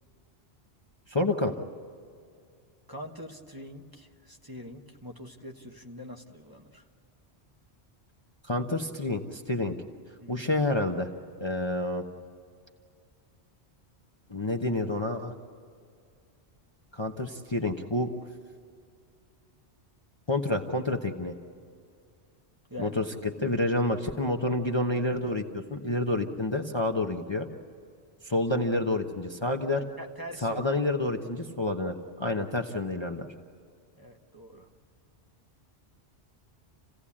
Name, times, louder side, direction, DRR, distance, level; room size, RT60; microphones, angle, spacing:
voice 1, 1.1-1.6 8.5-9.8 10.3-11.1 11.4-12.0 14.3-15.3 16.9-18.1 20.3-21.3 22.8-27.5 28.2-29.8 30.4-33.2, left 2 dB, 25° left, 3 dB, 1.0 m, -28 dB
voice 2, 2.9-6.8 10.2-10.5 22.7-23.0 29.7-30.8 34.0-34.7, equal, 20° right, 1 dB, 1.3 m, -44 dB
28.0 x 17.0 x 8.6 m, 2.2 s
omnidirectional pair, 1.2 m